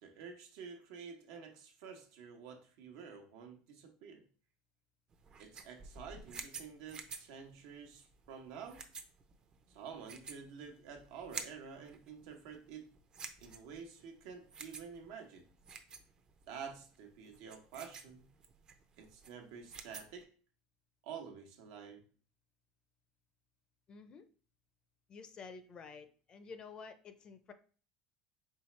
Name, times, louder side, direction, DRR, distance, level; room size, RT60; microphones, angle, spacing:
voice 1, 0.0-4.2 5.4-8.9 9.7-12.9 13.4-15.5 16.5-18.3 19.0-20.3 21.0-22.1, right 6 dB, 80° right, 1.0 m, -49 dB
sound 1, 5.1-20.2, right 5 dB, 30° right, 0.6 m, -51 dB
voice 2, 23.9-24.3 25.1-27.5, left 5 dB, 35° left, 0.5 m, -51 dB
4.6 x 3.2 x 3.2 m
supercardioid pair, 120°, 3 cm